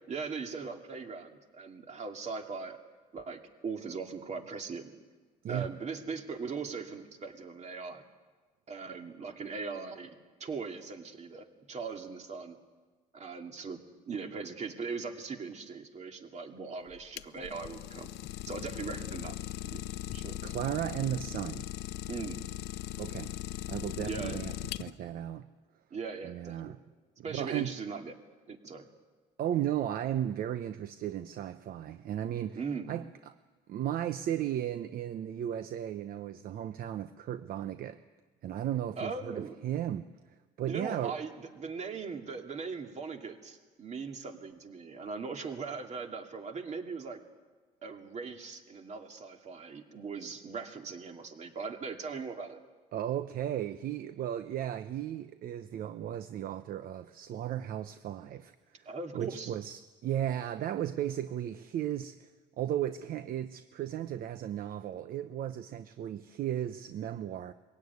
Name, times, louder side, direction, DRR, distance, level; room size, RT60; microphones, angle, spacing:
voice 1, 0.1-2.8 3.1-4.9 5.5-8.0 8.7-10.1 10.4-12.6 13.1-13.8 14.1-18.1 18.5-19.4 19.6-19.8 20.1-20.4 22.1-22.4 24.0-24.4 25.9-26.8 27.2-28.2 28.5-28.9 32.6-32.9 39.0-39.6 40.7-47.2 47.8-52.6 58.9-59.5, right 5 dB, 40° right, 4 dB, 2.5 m, -39 dB
Idling, 16.9-25.2, left 13 dB, 80° left, 0.6 m, -39 dB
voice 2, 20.4-21.7 23.0-23.3 23.7-25.5 26.2-26.8 27.3-27.7 29.4-32.6 32.9-33.0 33.7-38.0 38.4-40.1 40.6-41.1 52.9-58.9 59.1-62.3 62.6-67.5, right 11 dB, 60° right, 11 dB, 0.8 m, -35 dB
22.0 x 16.5 x 9.5 m, 1.3 s
cardioid pair, 110°, 17 cm